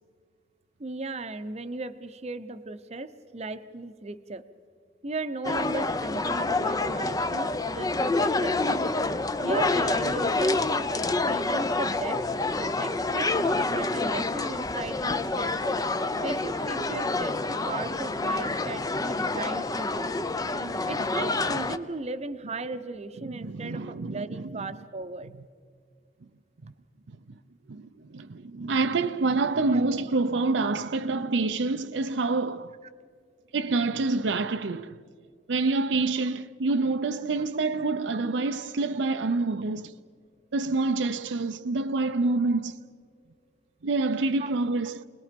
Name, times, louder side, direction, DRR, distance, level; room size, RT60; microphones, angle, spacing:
voice 1, 0.8-4.5 5.0-8.8 9.4-12.2 12.6-15.5 16.2-20.1 20.9-25.3 29.7-29.8 44.4-44.5, right 2 dB, 35° right, 0.8 m, -36 dB
sound 1, 5.4-21.8, left 2 dB, 20° left, 0.6 m, -27 dB
voice 2, 23.2-24.7 27.7-32.7 33.5-35.0 35.5-39.9 40.5-42.7 43.8-45.0, right 3 dB, 85° right, 0.6 m, -27 dB
29.0 x 20.5 x 5.2 m
head